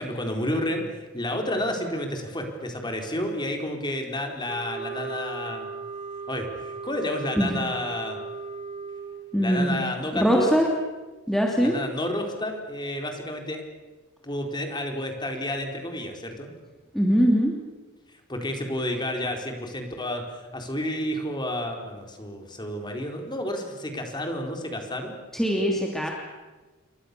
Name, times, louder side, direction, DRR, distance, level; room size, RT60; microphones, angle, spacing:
voice 1, 0.0-5.7 6.3-8.2 9.4-10.6 11.6-13.6 14.2-16.5 18.1-25.1, left 1 dB, 20° left, 3 dB, 4.5 m, -30 dB
sound 1, 4.5-9.4, right 4 dB, 30° right, 3.6 m, -37 dB
voice 2, 9.3-9.8 10.1-10.7 11.3-11.7 16.9-17.5 25.3-26.1, equal, ahead, -1 dB, 2.9 m, -22 dB
29.5 x 23.5 x 7.0 m, 1.2 s
head